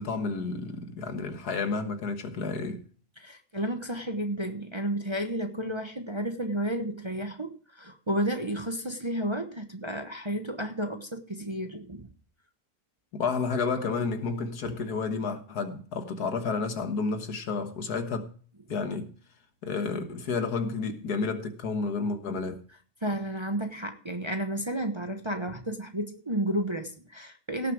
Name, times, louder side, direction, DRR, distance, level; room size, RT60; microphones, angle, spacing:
voice 1, 0.0-2.8 13.1-18.3 18.7-19.1 19.6-22.6, left 4 dB, 80° left, 1.9 m, -31 dB
voice 2, 3.2-12.1 14.7-14.8 23.0-27.7, right 1 dB, 20° right, 0.9 m, -32 dB
17.5 x 6.9 x 4.8 m
omnidirectional pair, 1.7 m